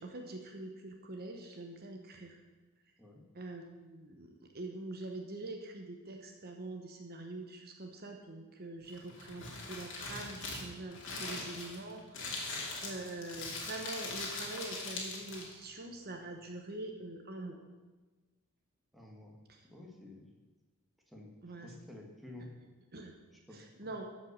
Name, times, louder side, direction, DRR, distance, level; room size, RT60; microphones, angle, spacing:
voice 1, 0.0-2.4 3.3-17.6 19.5-19.6 21.4-21.7 22.9-23.1 23.5-24.1, right 2 dB, 45° right, 3 dB, 1.0 m, -44 dB
Crumpling crinkling, 8.9-15.6, left 3 dB, 55° left, 2.5 m, -41 dB
voice 2, 18.9-19.3 19.7-20.3 21.1-21.3 21.6-22.5 23.5-23.9, left 1 dB, ahead, -1 dB, 1.5 m, -51 dB
13.0 x 5.5 x 6.5 m, 1.2 s
head